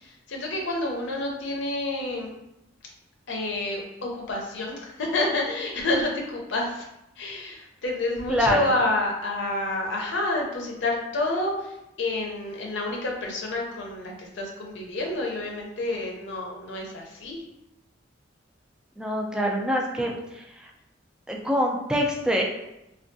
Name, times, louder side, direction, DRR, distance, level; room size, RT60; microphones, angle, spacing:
voice 1, 0.0-2.3 3.3-6.8 7.2-11.7 12.0-17.4, left 2 dB, 70° left, 0 dB, 0.6 m, -29 dB
voice 2, 8.3-8.7 19.0-20.4 21.3-22.4, equal, 5° right, 0 dB, 0.3 m, -25 dB
3.4 x 2.3 x 2.6 m, 0.88 s
head